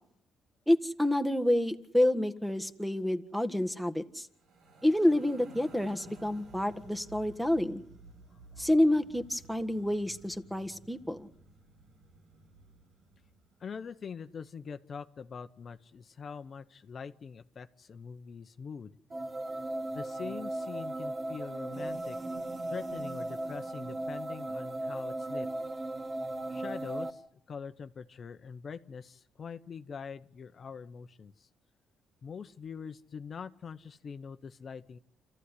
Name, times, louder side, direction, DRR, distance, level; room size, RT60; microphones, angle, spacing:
voice 1, 0.7-4.3 4.8-7.8 8.6-11.3, left 1 dB, ahead, 9 dB, 1.6 m, -28 dB
sound 1, 4.3-13.7, right 2 dB, 75° right, 4.4 m, -54 dB
voice 2, 13.6-18.9 19.9-22.2 22.7-25.5 26.5-27.1 27.5-31.3 32.2-35.0, left 6 dB, 50° left, 9 dB, 1.0 m, -43 dB
sound 2, 19.1-27.1, right 1 dB, 35° right, 2.5 m, -37 dB
28.0 x 14.5 x 9.9 m, 0.74 s
cardioid pair, 90°, 0 cm